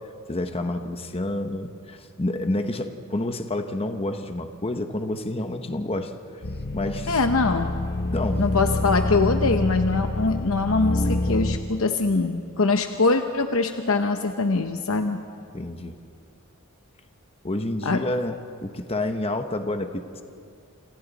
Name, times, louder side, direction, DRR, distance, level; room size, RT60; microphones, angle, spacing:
voice 1, 0.3-6.2 6.7-7.1 8.1-8.5 15.5-16.0 17.4-20.2, left 1 dB, 25° left, 6 dB, 1.0 m, -29 dB
sound 1, 6.4-11.6, left 2 dB, 50° left, 1.2 m, -26 dB
voice 2, 7.1-7.7 8.4-15.2 17.8-18.0, left 3 dB, 70° left, 6 dB, 0.9 m, -23 dB
28.5 x 27.5 x 4.1 m, 2.4 s
head